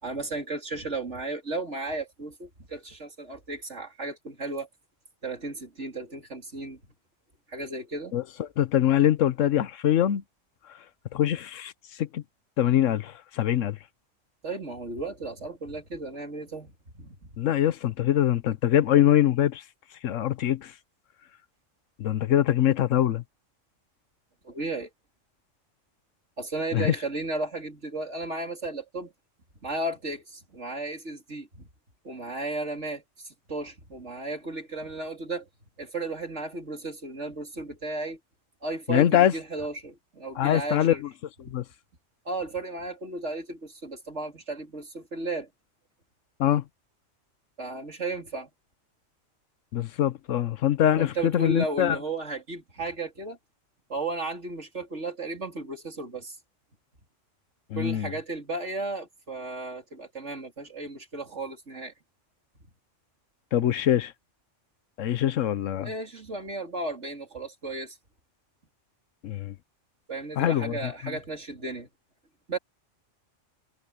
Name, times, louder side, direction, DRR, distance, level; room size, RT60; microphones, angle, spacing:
voice 1, 0.0-4.7 5.2-6.8 7.5-8.1 14.4-17.2 24.4-24.9 26.4-29.1 29.6-31.7 32.0-35.5 35.8-38.2 38.6-41.0 42.3-45.5 47.6-48.5 51.0-53.4 53.9-56.4 57.7-61.9 65.8-68.0 70.1-71.9 72.5-72.6, right 2 dB, 65° right, 4.1 m, -34 dB
voice 2, 8.1-10.2 11.1-11.7 12.0-12.2 12.6-13.8 17.4-19.6 20.0-20.7 22.0-23.2 26.7-26.9 38.9-39.3 40.4-41.1 41.4-41.6 46.4-46.6 49.7-52.0 57.7-58.1 63.5-64.1 65.0-65.9 69.2-69.5 70.4-71.2, left 11 dB, 80° left, 1.1 m, -23 dB
omnidirectional pair, 1.3 m